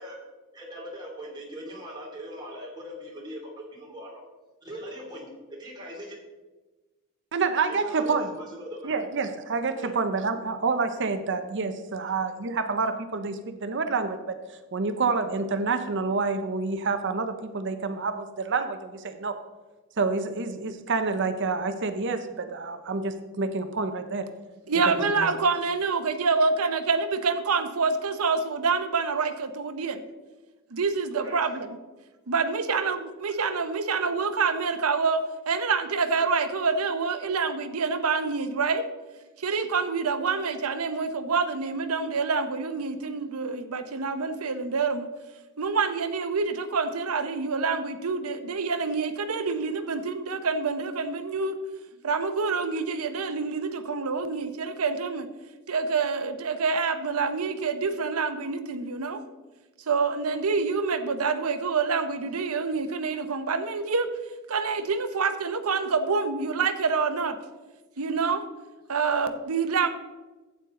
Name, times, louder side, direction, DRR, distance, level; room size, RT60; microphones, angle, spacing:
voice 1, 0.5-4.2 4.6-6.2 7.7-8.9 9.8-9.9 31.1-31.4, equal, 20° right, -3 dB, 2.8 m, -40 dB
voice 2, 7.3-8.3 8.8-14.4 14.7-19.4 20.0-24.3 24.9-25.3, right 4 dB, 55° right, 8 dB, 0.7 m, -28 dB
voice 3, 24.7-30.0 30.7-31.8 32.3-38.9 39.4-45.1 45.6-51.5 52.0-55.3 55.7-59.2 59.9-64.2 64.5-67.4 68.0-68.5 68.9-69.9, right 4 dB, 90° right, 9 dB, 0.8 m, -27 dB
11.5 x 8.4 x 3.7 m, 1.2 s
head